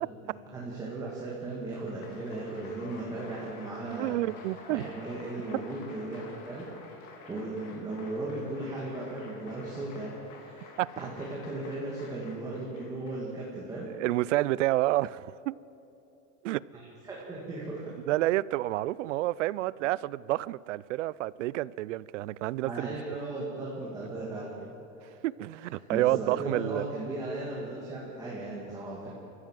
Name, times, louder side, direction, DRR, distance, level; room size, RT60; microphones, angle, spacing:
voice 1, 0.2-4.2 4.7-6.7 7.3-13.9 16.7-17.9 22.6-24.5 25.0-25.1 25.9-29.1, right 2 dB, 10° right, 2.3 m, -37 dB
Applause, 1.6-13.5, left 3 dB, 35° left, 2.9 m, -50 dB
voice 2, 3.9-4.9 5.5-5.6 10.8-10.9 13.9-15.6 16.4-16.6 18.1-22.9 25.2-26.9, right 16 dB, 65° right, 0.5 m, -29 dB
29.0 x 14.5 x 7.5 m
supercardioid pair, 175°, 40 cm